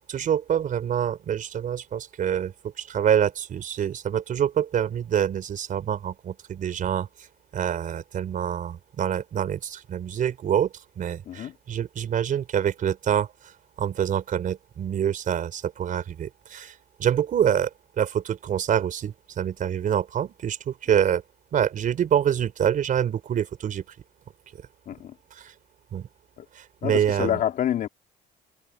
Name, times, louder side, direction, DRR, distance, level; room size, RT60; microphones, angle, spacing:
voice 1, 0.1-7.1 7.5-13.5 13.8-17.7 18.0-21.2 21.5-23.8 25.3-25.5 25.9-26.1 26.5-27.4, right 9 dB, 50° right, 4.3 m, -26 dB
voice 2, 26.8-27.9, left 11 dB, 60° left, 2.6 m, -27 dB
cardioid pair, 110°, 17 cm